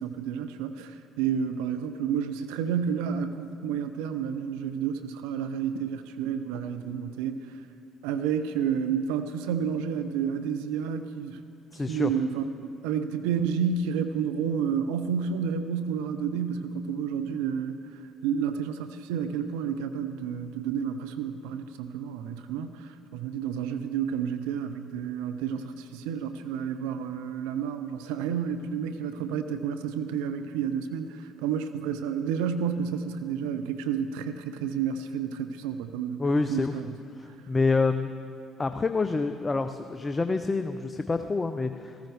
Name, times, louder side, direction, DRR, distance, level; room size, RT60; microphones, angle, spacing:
voice 1, 0.0-7.5 8.0-11.4 11.9-12.5 12.8-36.2 36.5-36.9, right 7 dB, 70° right, 9 dB, 0.5 m, -30 dB
voice 2, 11.7-12.1 36.2-36.7 37.2-38.1 38.6-42.0, left 3 dB, 25° left, 9 dB, 0.5 m, -27 dB
15.0 x 14.0 x 3.4 m, 2.5 s
figure-of-eight pair, 50°, 0 cm